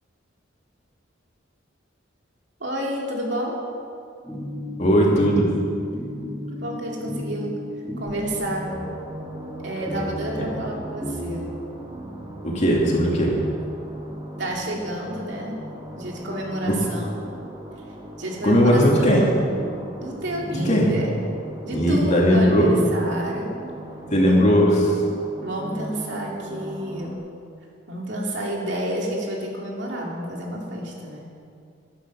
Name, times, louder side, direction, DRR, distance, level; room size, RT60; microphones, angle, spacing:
voice 1, 2.6-3.6 6.5-7.6 8.0-8.8 9.6-11.4 14.4-15.7 15.9-17.1 18.2-21.1 21.6-23.6 25.4-27.2 27.9-31.3, right 1 dB, 65° right, -2 dB, 2.5 m, -30 dB
sound 1, 4.2-12.5, left 1 dB, 5° left, 3.3 m, -34 dB
voice 2, 4.8-5.5 10.4-10.5 12.4-13.4 16.7-16.8 18.4-19.3 20.5-20.9 21.7-22.7 24.1-24.9, equal, 40° left, -2 dB, 2.4 m, -18 dB
sound 2, 8.2-27.2, right 1 dB, 20° right, 1.9 m, -38 dB
13.0 x 10.5 x 6.1 m, 2.4 s
head